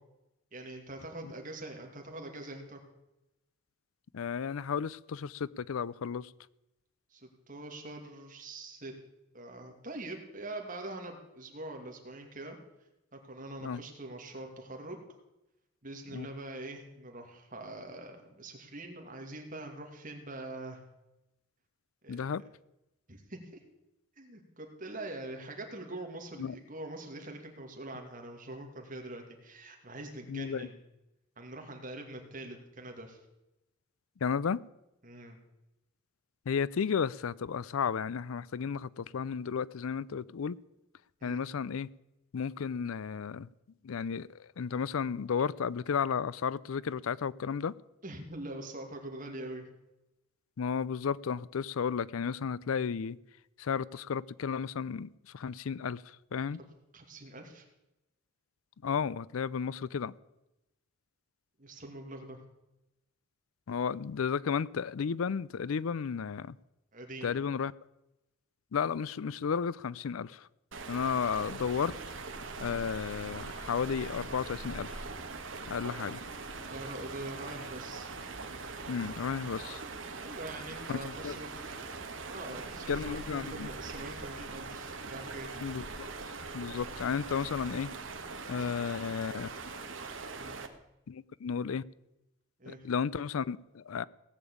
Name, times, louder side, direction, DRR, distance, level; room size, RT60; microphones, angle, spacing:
voice 1, 0.5-2.8 7.1-8.9 9.3-12.6 13.1-15.0 15.8-20.8 22.0-22.5 23.1-23.6 24.2-30.8 31.4-33.2 35.0-35.4 41.2-41.4 48.0-49.7 56.9-57.7 61.6-62.4 66.9-67.4 76.6-78.1 80.2-81.8 82.3-85.5 88.6-88.7 90.4-90.6 92.6-92.9, right 2 dB, 40° right, 3 dB, 2.5 m, -44 dB
voice 2, 4.1-6.3 13.6-13.8 16.1-16.3 22.1-22.4 26.4-26.5 30.3-30.7 34.2-34.6 36.5-40.6 41.2-41.9 42.3-43.5 43.8-47.7 50.6-53.2 53.6-56.6 58.8-60.1 63.7-66.6 67.2-67.7 68.7-70.5 70.9-72.0 72.6-75.1 75.7-76.2 78.9-79.8 80.9-81.4 82.9-83.7 85.6-86.1 86.5-87.9 88.5-89.5 91.1-91.8 92.7-94.0, left 6 dB, 90° left, 21 dB, 0.5 m, -33 dB
sound 1, 70.7-90.7, right 4 dB, 65° right, 1.5 m, -42 dB
17.5 x 7.1 x 8.6 m, 0.94 s
head